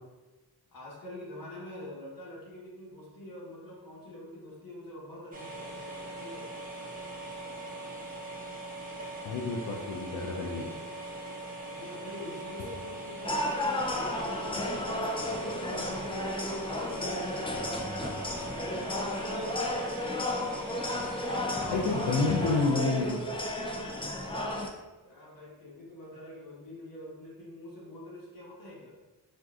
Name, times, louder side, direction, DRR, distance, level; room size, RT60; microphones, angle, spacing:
voice 1, 0.7-6.5 11.7-16.4 16.8-17.2 25.0-28.9, left 2 dB, 55° left, -5 dB, 1.3 m, -45 dB
sound 1, 5.3-22.6, right 2 dB, 20° right, 0.9 m, -41 dB
voice 2, 9.2-10.7 21.7-23.2, left 3 dB, 80° left, -1 dB, 0.5 m, -29 dB
sound 2, 13.2-24.7, left 1 dB, 15° left, 0.3 m, -33 dB
3.7 x 2.5 x 2.4 m, 1.1 s
cardioid pair, 60°, 41 cm